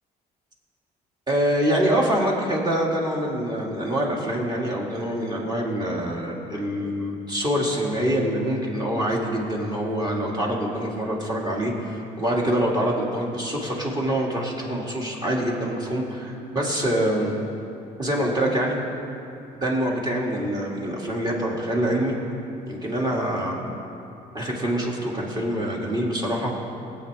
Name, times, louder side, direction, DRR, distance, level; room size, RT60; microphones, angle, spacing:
voice 1, 1.3-17.3 18.0-18.8 19.6-22.2 22.7-23.6 24.3-26.5, right 1 dB, 25° right, -3 dB, 2.4 m, -25 dB
19.5 x 8.5 x 3.5 m, 2.8 s
cardioid pair, 110°, 17 cm